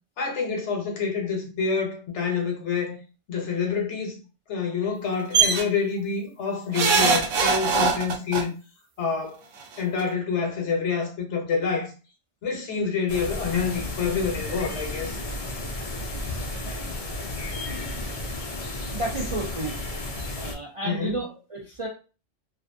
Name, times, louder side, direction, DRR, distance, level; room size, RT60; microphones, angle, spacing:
voice 1, 0.2-3.0 3.3-4.2 4.5-8.5 9.0-9.4 9.8-11.9 12.4-15.1 20.8-21.2, left 5 dB, 65° left, 1.0 m, -27 dB
sound 1, 5.3-5.6 6.7-8.4 9.6-9.7 10.0-10.1, right 5 dB, 75° right, 0.9 m, -21 dB
sound 2, 13.1-20.5, left 2 dB, 50° left, 0.4 m, -33 dB
voice 2, 18.9-19.7 20.4-21.9, right 2 dB, 45° right, 0.4 m, -31 dB
2.5 x 2.5 x 2.5 m
omnidirectional pair, 1.3 m